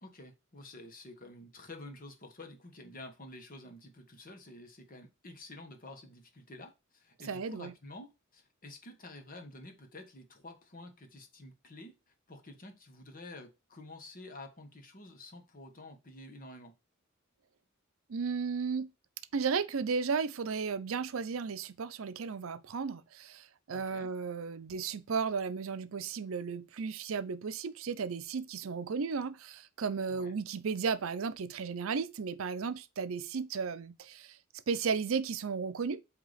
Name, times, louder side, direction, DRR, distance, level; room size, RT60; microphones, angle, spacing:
voice 1, 0.0-16.7 23.7-24.1 30.1-30.3, left 2 dB, 45° left, 1.3 m, -50 dB
voice 2, 7.3-7.7 18.1-18.9 19.3-34.4 34.7-36.0, right 5 dB, 80° right, 0.5 m, -34 dB
8.0 x 2.9 x 4.0 m
head